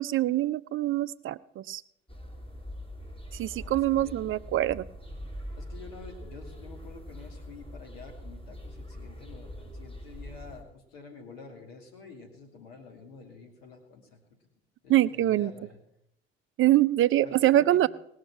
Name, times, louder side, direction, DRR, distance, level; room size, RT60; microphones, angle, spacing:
voice 1, 0.0-1.8 3.3-4.9 14.9-15.5 16.6-17.9, right 14 dB, 45° right, 17 dB, 0.5 m, -24 dB
sound 1, 2.1-10.6, equal, 20° left, 3.6 m, -43 dB
voice 2, 3.5-4.3 5.6-14.2 14.8-15.8 17.2-17.9, left 4 dB, 80° left, 3 dB, 2.6 m, -48 dB
19.0 x 6.5 x 5.9 m, 0.79 s
figure-of-eight pair, 55°, 30 cm